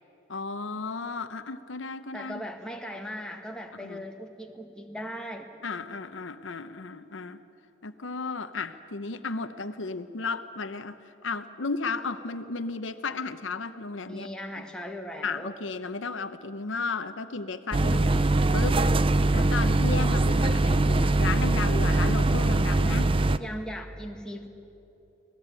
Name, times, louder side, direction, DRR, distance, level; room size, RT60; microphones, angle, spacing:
voice 1, 0.3-2.4 3.8-4.0 5.6-7.4 7.8-14.3 14.6-14.7 15.2-18.8 19.3-23.1, left 4 dB, 75° left, 10 dB, 0.9 m, -34 dB
voice 2, 2.1-5.5 14.1-15.6 22.8-23.0 23.4-24.5, equal, 5° left, 1 dB, 1.8 m, -38 dB
sound 1, 17.7-23.4, right 2 dB, 25° right, 0.6 m, -22 dB
25.5 x 18.0 x 9.0 m, 2.9 s
head